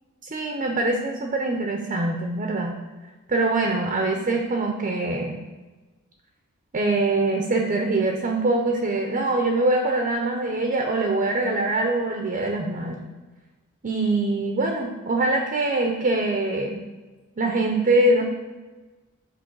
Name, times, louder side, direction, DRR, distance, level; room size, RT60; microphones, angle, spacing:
voice 1, 0.2-2.8 3.3-5.4 6.7-13.0 13.8-16.8 17.4-18.2, right 2 dB, 35° right, 3 dB, 0.6 m, -23 dB
7.8 x 3.0 x 4.6 m, 1.3 s
head